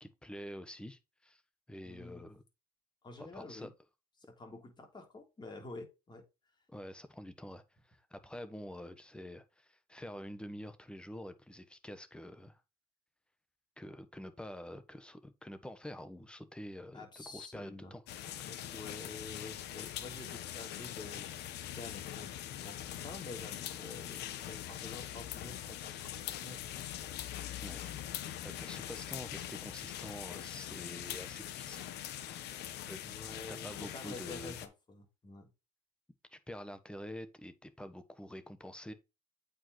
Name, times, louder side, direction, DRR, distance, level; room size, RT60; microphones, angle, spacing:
voice 1, 0.0-1.4 1.7-2.4 3.2-3.7 6.7-12.6 13.8-18.6 27.6-27.8 28.0-31.9 32.8-33.0 33.5-34.5 36.3-38.9, left 1 dB, 5° left, 1.2 m, -47 dB
voice 2, 1.8-2.3 3.0-3.7 4.3-6.2 16.9-17.9 18.7-22.3 22.6-24.2 24.5-26.1 26.4-26.6 33.0-35.5, left 2 dB, 25° left, 3.4 m, -49 dB
sound 1, 18.1-34.7, left 11 dB, 80° left, 1.1 m, -42 dB
8.5 x 5.2 x 3.1 m
cardioid pair, 110°, 17 cm